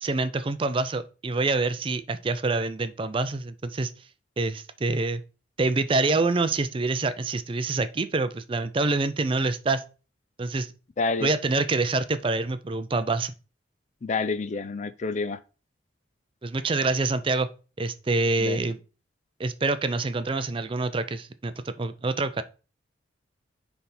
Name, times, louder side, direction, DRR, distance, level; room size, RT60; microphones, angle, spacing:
voice 1, 0.0-3.9 4.4-5.2 5.6-9.8 10.4-10.7 11.2-13.3 16.4-17.5 17.8-18.8 19.4-21.5 21.8-22.4, right 3 dB, 30° right, 0.4 m, -26 dB
voice 2, 11.0-11.3 14.0-15.4 18.4-18.6, left 3 dB, 40° left, 0.4 m, -28 dB
9.7 x 3.5 x 4.2 m
head